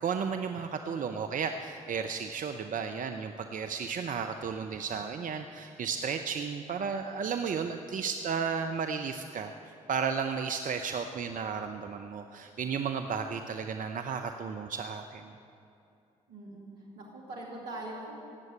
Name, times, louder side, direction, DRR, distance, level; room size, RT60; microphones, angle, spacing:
voice 1, 0.0-9.5 9.9-15.3, right 6 dB, 50° right, 6 dB, 0.8 m, -33 dB
voice 2, 16.3-16.7 17.0-18.1, right 2 dB, 80° right, -2 dB, 2.7 m, -42 dB
17.5 x 7.9 x 8.7 m, 2.6 s
hypercardioid pair, 45°, 18 cm